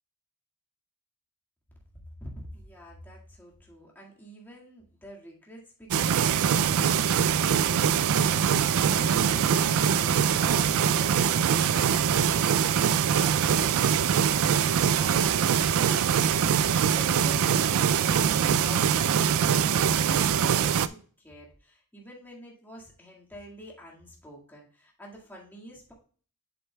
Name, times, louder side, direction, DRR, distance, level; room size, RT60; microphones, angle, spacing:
voice 1, 2.2-25.9, equal, 10° left, -3 dB, 1.8 m, -47 dB
sound 1, 5.9-20.9, right 8 dB, 65° right, 0.3 m, -23 dB
7.7 x 7.7 x 2.2 m, 0.43 s
head